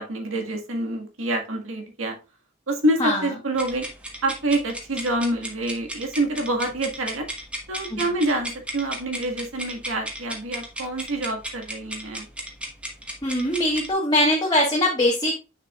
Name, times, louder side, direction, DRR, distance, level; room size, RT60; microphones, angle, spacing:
voice 1, 0.0-2.2 2.7-3.9 4.2-7.3 7.7-12.3, right 1 dB, 85° right, 3 dB, 1.8 m, -27 dB
sound 1, 3.5-13.9, right 1 dB, 5° right, 1.4 m, -35 dB
voice 2, 13.2-15.3, left 1 dB, 20° left, -2 dB, 1.4 m, -21 dB
6.9 x 6.7 x 2.4 m, 0.30 s
head